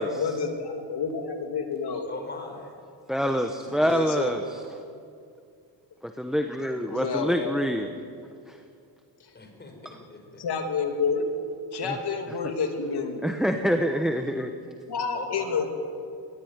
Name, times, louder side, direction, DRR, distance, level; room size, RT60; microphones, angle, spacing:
voice 1, 0.0-2.1 3.8-4.4 6.8-7.7 9.2-9.3 10.4-11.3 11.7-13.6 14.9-15.7, left 5 dB, 60° left, 4 dB, 3.0 m, -29 dB
voice 2, 2.1-2.8 9.3-10.4 15.1-15.6, left 3 dB, 20° left, 3 dB, 5.8 m, -41 dB
voice 3, 3.1-4.4 6.0-7.9 8.5-8.6 13.2-14.5, equal, ahead, 6 dB, 1.1 m, -26 dB
21.0 x 19.5 x 9.6 m, 2.3 s
cardioid pair, 125°, 45 cm